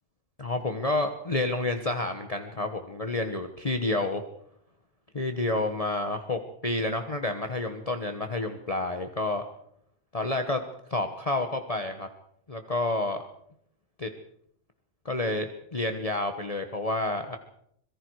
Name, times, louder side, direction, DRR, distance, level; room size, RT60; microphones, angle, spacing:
voice 1, 0.4-4.2 5.1-9.4 10.1-10.6 10.9-12.1 12.5-13.2 14.0-14.1 15.0-17.4, left 2 dB, 25° left, 6 dB, 1.3 m, -29 dB
25.5 x 22.5 x 4.8 m, 0.70 s
omnidirectional pair, 1.4 m